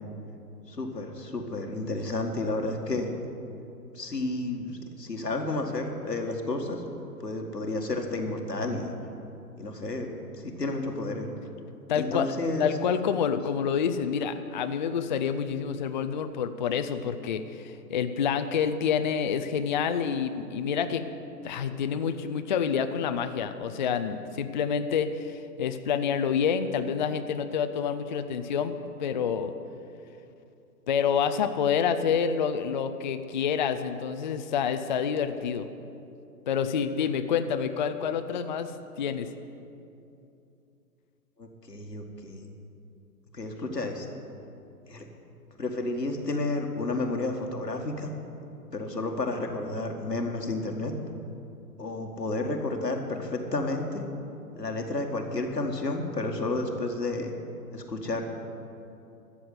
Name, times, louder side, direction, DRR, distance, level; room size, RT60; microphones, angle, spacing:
voice 1, 0.7-3.1 3.9-6.8 7.2-8.9 9.6-11.3 11.9-12.7 41.4-42.5 43.3-44.1 44.9-45.1 45.6-48.1 48.7-50.9 51.8-54.0 54.5-57.3 57.7-58.2, left 2 dB, 90° left, 2 dB, 1.8 m, -31 dB
voice 2, 11.9-21.1 21.4-29.5 30.9-35.7 36.5-38.7 39.0-39.3, left 7 dB, 30° left, 8 dB, 0.4 m, -28 dB
13.0 x 7.1 x 9.5 m, 2.7 s
figure-of-eight pair, 120°, 47 cm